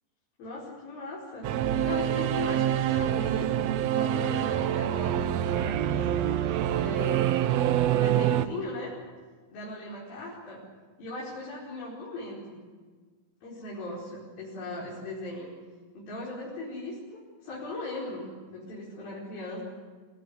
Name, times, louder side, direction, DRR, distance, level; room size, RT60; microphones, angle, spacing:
voice 1, 0.4-1.5 1.8-3.5 3.9-6.1 6.4-7.3 7.9-8.9 9.5-10.6 11.0-12.6 13.4-15.5 15.9-19.6, left 2 dB, 85° left, -6 dB, 6.9 m, -38 dB
Singing / Musical instrument, 1.4-8.5, right 11 dB, 80° right, 1.5 m, -26 dB
26.0 x 18.5 x 9.8 m, 1.5 s
omnidirectional pair, 4.1 m